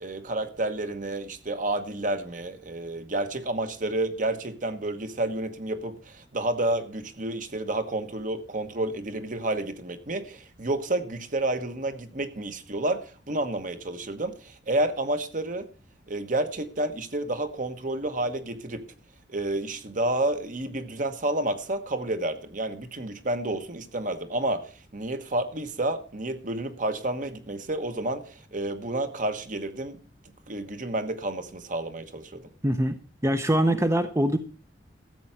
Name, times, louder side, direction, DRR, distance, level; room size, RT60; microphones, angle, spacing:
voice 1, 0.0-15.7 16.1-18.9 19.3-30.0 30.5-32.4, right 1 dB, 45° right, 1.2 m, -30 dB
voice 2, 32.6-32.9 33.2-34.4, right 1 dB, 15° right, 0.7 m, -23 dB
13.5 x 7.8 x 5.8 m
head